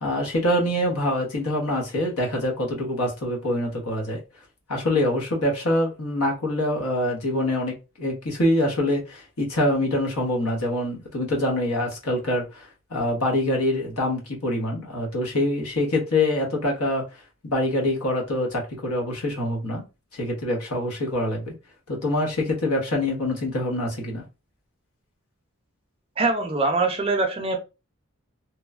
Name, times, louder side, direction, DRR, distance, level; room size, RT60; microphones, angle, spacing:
voice 1, 0.0-4.2 4.7-17.0 17.4-19.8 20.1-21.5 21.9-24.2, left 1 dB, 80° left, 0 dB, 0.9 m, -25 dB
voice 2, 26.2-27.6, right 3 dB, 25° right, 4 dB, 0.4 m, -23 dB
3.0 x 2.1 x 2.3 m, 0.29 s
head